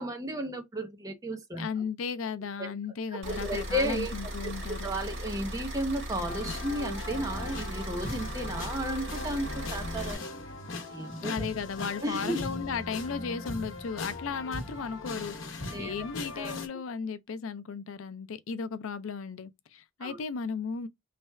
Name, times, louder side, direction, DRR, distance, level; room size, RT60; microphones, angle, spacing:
voice 1, 0.0-1.7 2.6-2.7 3.1-4.1 4.4-4.5 4.8-10.2 10.9-11.3 12.0-12.4 15.7-15.9 16.3-16.6 20.0-20.2, right 1 dB, 15° right, 0.7 m, -33 dB
voice 2, 1.6-4.9 11.2-20.9, left 5 dB, 85° left, 0.5 m, -35 dB
sound 1, 3.2-10.2, equal, 65° right, 1.9 m, -38 dB
sound 2, 6.2-16.7, left 2 dB, 70° left, 0.9 m, -39 dB
3.3 x 2.3 x 4.2 m
head